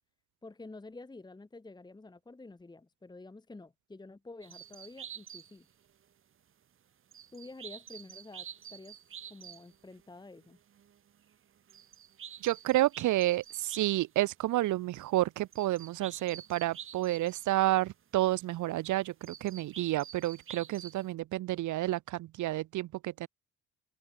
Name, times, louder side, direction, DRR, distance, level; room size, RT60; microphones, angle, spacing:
voice 1, 0.4-5.7 7.3-9.0 9.3-10.6, left 2 dB, 15° left, 1.2 m, -49 dB
sound 1, 4.4-5.9 7.1-14.0 14.7-14.8 15.5-17.6 19.2-21.1, right 9 dB, 45° right, 0.9 m, -48 dB
voice 2, 12.4-23.3, right 16 dB, 80° right, 0.9 m, -30 dB
open air
cardioid pair, 90°, 30 cm